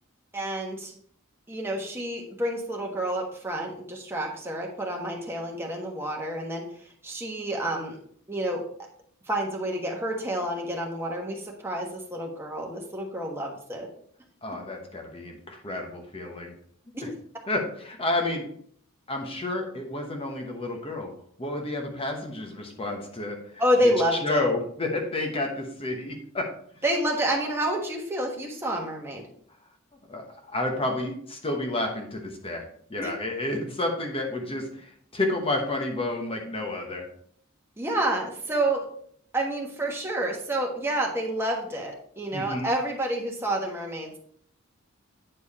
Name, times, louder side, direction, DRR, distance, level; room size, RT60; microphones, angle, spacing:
voice 1, 0.3-0.9 1.5-6.6 7.0-8.0 8.3-8.6 9.3-13.9 16.9-17.1 23.6-24.5 26.8-29.2 33.0-33.1 37.8-38.9 39.3-44.2, right 1 dB, 10° right, 0 dB, 1.3 m, -29 dB
voice 2, 14.4-16.5 17.0-17.1 17.5-18.5 19.1-21.1 21.4-26.5 30.1-37.1 42.3-42.7, left 2 dB, 25° left, 2 dB, 1.1 m, -30 dB
8.8 x 4.6 x 4.2 m, 0.62 s
head